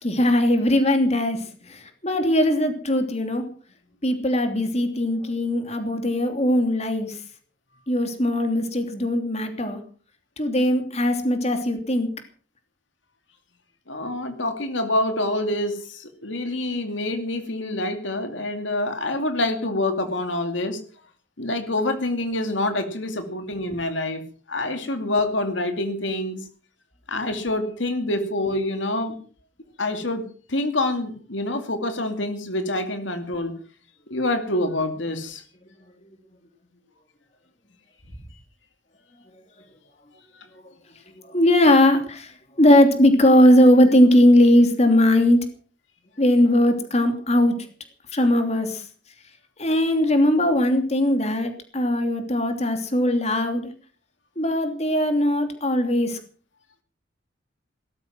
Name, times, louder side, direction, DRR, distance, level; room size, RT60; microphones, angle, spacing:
voice 1, 0.0-3.4 4.0-7.2 7.9-9.8 10.4-12.1 36.0-36.1 41.1-45.4 46.2-47.6 48.1-48.8 49.6-53.7 54.4-56.2, left 1 dB, 35° left, 6 dB, 3.0 m, -19 dB
voice 2, 13.9-20.8 21.4-24.2 24.5-26.4 27.1-29.1 29.8-33.5 34.1-35.4, left 1 dB, 90° left, 7 dB, 2.5 m, -26 dB
18.5 x 13.0 x 6.0 m, 0.43 s
head